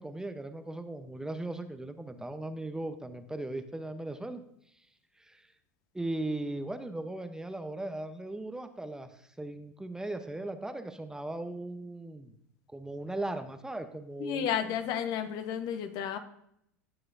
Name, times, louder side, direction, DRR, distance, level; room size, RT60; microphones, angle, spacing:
voice 1, 0.0-4.4 5.2-5.5 5.9-12.3 12.7-14.7, right 2 dB, 5° right, 9 dB, 0.8 m, -38 dB
voice 2, 14.2-16.2, left 9 dB, 55° left, 8 dB, 1.2 m, -32 dB
15.5 x 7.8 x 2.7 m, 0.75 s
hypercardioid pair, 80°, 8 cm